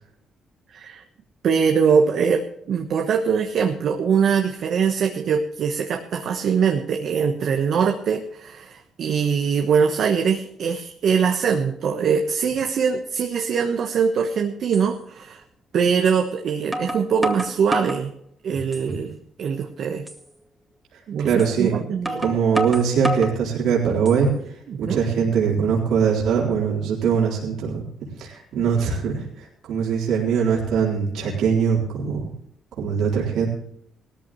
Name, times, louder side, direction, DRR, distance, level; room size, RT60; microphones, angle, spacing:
voice 1, 0.7-1.0 1.4-15.4 15.7-18.1 18.4-20.0 21.1-21.3 21.6-22.3 24.7-25.0, right 6 dB, 65° right, 4 dB, 1.2 m, -22 dB
sound 1, 14.1-14.2 14.7-14.9 16.1-16.2 16.7-18.0 18.5-19.1 19.5-19.6 20.1-20.2 21.4-21.5 22.0-23.4 23.9-24.4, right 1 dB, 5° right, 2.1 m, -28 dB
voice 2, 21.2-21.7 22.2-24.3 24.8-27.8 28.2-32.3 32.8-33.5, right 6 dB, 80° right, -4 dB, 3.9 m, -22 dB
18.0 x 14.0 x 3.1 m, 0.72 s
cardioid pair, 90°, 0 cm